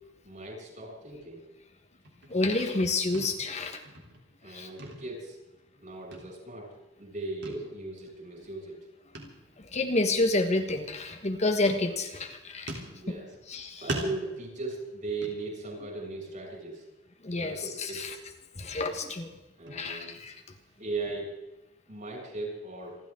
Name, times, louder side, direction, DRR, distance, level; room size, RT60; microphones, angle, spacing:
voice 1, 0.2-1.4 4.4-5.4 5.8-8.8 12.8-13.3 13.8-16.8 17.3-18.1 19.6-20.2 20.8-21.4 21.9-23.0, right 2 dB, 45° right, -1 dB, 7.1 m, -38 dB
sound 1, 2.0-2.9 3.1-3.6 3.8-4.5 4.8-5.8 6.1-6.8 7.4-7.7 8.0-8.1 9.1-9.5 9.7-9.9 10.7-11.3 11.7-12.3 12.7-13.5 13.9-15.9 16.3-16.6 16.9-17.0 17.5-18.2 18.6-21.1, right 2 dB, 60° right, 3.5 m, -42 dB
voice 2, 2.3-3.8 4.5-4.7 9.2-9.3 9.6-12.7 13.1-13.2 13.5-13.8 17.2-18.1 18.6-19.3 19.7-20.3, left 2 dB, 35° left, 5 dB, 1.4 m, -29 dB
28.0 x 12.5 x 3.8 m, 1.0 s
head